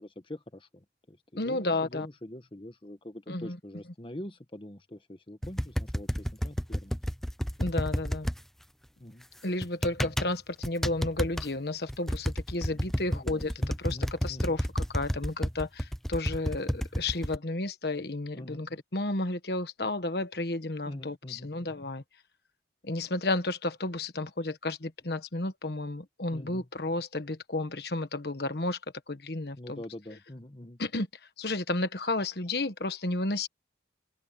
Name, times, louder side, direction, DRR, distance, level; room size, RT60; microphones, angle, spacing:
voice 1, 0.0-7.0 9.0-9.3 10.0-10.1 12.6-14.6 18.4-18.7 20.9-21.5 26.3-26.7 29.6-30.8, left 1 dB, 30° left, 1.2 m, -44 dB
voice 2, 1.4-2.1 3.3-3.6 7.6-8.3 9.4-22.0 22.8-28.8 29.1-29.8 30.8-31.1 31.4-33.5, left 2 dB, 60° left, 1.4 m, -32 dB
sound 1, 5.4-8.4 9.6-10.3 10.6-11.5 11.9-17.4, equal, ahead, 0.5 m, -30 dB
head